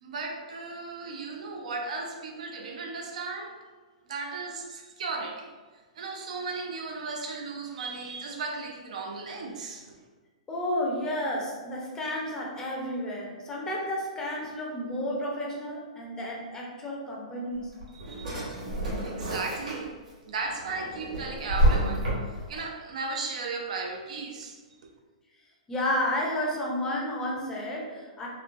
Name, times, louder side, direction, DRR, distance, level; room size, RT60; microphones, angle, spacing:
voice 1, 0.0-3.5 4.1-5.5 6.0-9.9 17.9-18.4 19.0-20.0 20.3-22.0 22.5-24.6, right 4 dB, 70° right, 2 dB, 0.5 m, -35 dB
voice 2, 10.5-17.7 25.7-28.3, left 1 dB, 15° left, -3 dB, 0.5 m, -31 dB
Drawer open or close, 17.5-20.1 20.5-22.6, right 1 dB, 85° right, 1.1 m, -28 dB
3.0 x 2.0 x 2.4 m, 1.3 s
hypercardioid pair, 140°, 4 cm